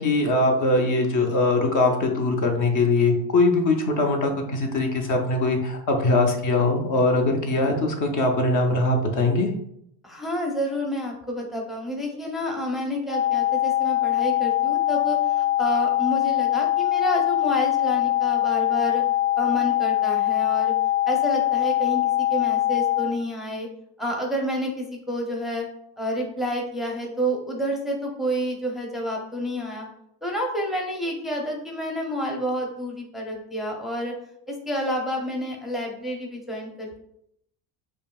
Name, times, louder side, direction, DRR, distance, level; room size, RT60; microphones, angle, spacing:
voice 1, 0.0-9.5, left 2 dB, 40° left, 3 dB, 0.7 m, -21 dB
voice 2, 10.0-19.0 19.4-20.7 21.1-22.0 22.3-23.7 24.0-25.7 26.0-29.9 30.2-34.1 34.5-37.0, equal, ahead, 0 dB, 0.6 m, -29 dB
sound 1, 13.1-23.1, left 14 dB, 20° left, 1.1 m, -23 dB
5.1 x 2.7 x 2.4 m, 0.76 s
supercardioid pair, 105°, 46 cm